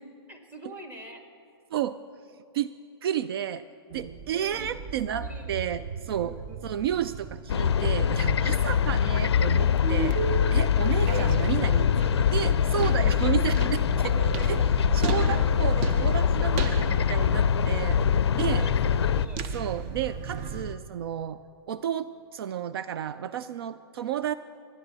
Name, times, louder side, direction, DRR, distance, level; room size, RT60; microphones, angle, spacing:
voice 1, 0.3-1.2 4.3-4.8 5.2-5.8 6.2-6.7 14.4-14.5 15.2-15.4 18.6-19.6, right 1 dB, 15° right, 4 dB, 1.6 m, -45 dB
voice 2, 3.0-3.6 3.9-5.8 6.1-6.3 6.6-10.2 10.5-14.6 14.9-18.0 18.3-18.6 19.5-21.4 21.7-24.3, right 10 dB, 65° right, 14 dB, 0.4 m, -31 dB
sound 1, 3.9-20.8, right 5 dB, 40° right, 0.8 m, -35 dB
sound 2, 7.5-19.3, left 8 dB, 85° left, 0.4 m, -23 dB
24.5 x 10.0 x 4.1 m, 2.5 s
hypercardioid pair, 130°, 13 cm